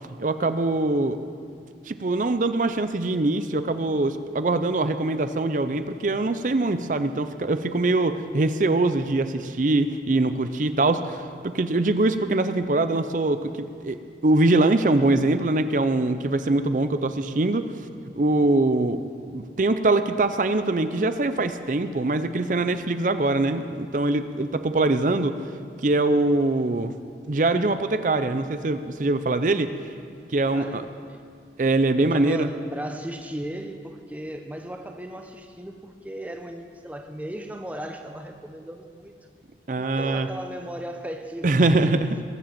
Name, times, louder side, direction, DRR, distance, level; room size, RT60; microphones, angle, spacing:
voice 1, 0.2-1.2 1.9-14.0 14.2-17.7 18.2-19.0 19.3-25.4 25.8-26.9 27.3-29.7 30.3-30.8 31.6-32.5 39.7-40.3 41.4-42.0, right 2 dB, 45° right, 11 dB, 0.5 m, -23 dB
voice 2, 30.5-31.2 32.0-39.3 39.8-42.1, right 1 dB, 10° right, 5 dB, 0.7 m, -36 dB
20.5 x 7.7 x 7.5 m, 2.2 s
head